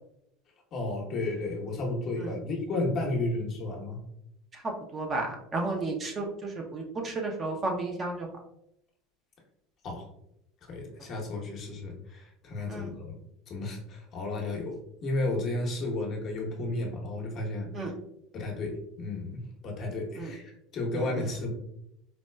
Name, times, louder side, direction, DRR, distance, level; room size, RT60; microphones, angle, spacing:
voice 1, 0.7-4.0 9.8-10.1 10.7-13.2 13.5-14.8 15.0-17.9 18.3-18.7 19.0-21.5, left 2 dB, 45° left, 0 dB, 0.9 m, -33 dB
voice 2, 4.5-8.3 12.7-12.9 17.7-17.9 20.2-20.3 20.9-21.1, right 2 dB, 30° right, 1 dB, 0.7 m, -33 dB
4.1 x 2.2 x 2.2 m, 0.78 s
supercardioid pair, 95°, 0 cm